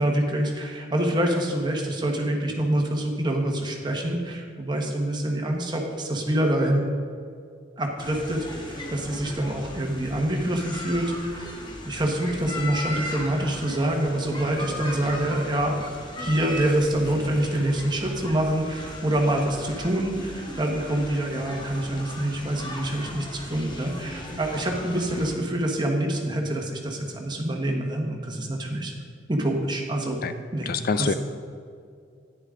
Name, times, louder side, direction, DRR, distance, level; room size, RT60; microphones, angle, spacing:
voice 1, 0.0-6.9 7.8-15.8 16.2-28.9 29.3-30.2 30.5-31.1, right 1 dB, 25° right, 1 dB, 1.3 m, -26 dB
sound 1, 8.0-25.4, left 1 dB, 25° left, 1.2 m, -37 dB
voice 2, 30.7-31.1, left 5 dB, 50° left, 11 dB, 0.4 m, -25 dB
11.0 x 10.0 x 3.8 m, 2.3 s
head